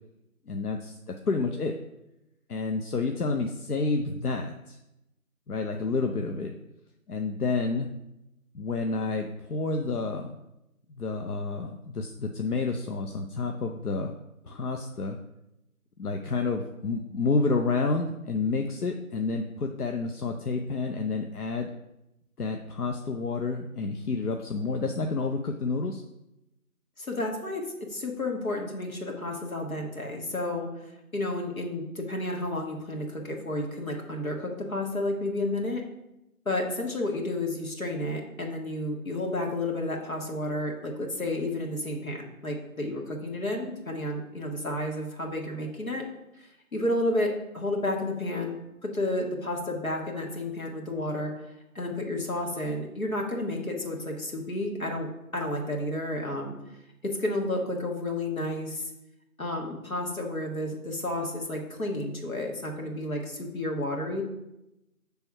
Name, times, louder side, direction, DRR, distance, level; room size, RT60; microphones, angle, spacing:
voice 1, 0.5-1.0 1.3-1.7 2.5-4.8 5.5-6.5 7.1-7.9 8.5-10.3 10.9-14.1 14.4-15.2 16.0-21.7 22.4-26.0, left 3 dB, 85° left, 4 dB, 0.7 m, -29 dB
voice 2, 27.0-30.7 31.1-35.8 36.4-42.2 42.4-46.0 46.4-51.3 51.7-56.6 57.0-58.9 59.4-64.2, left 1 dB, 65° left, 1 dB, 1.5 m, -31 dB
6.1 x 3.5 x 5.3 m, 0.91 s
figure-of-eight pair, 175°, 44 cm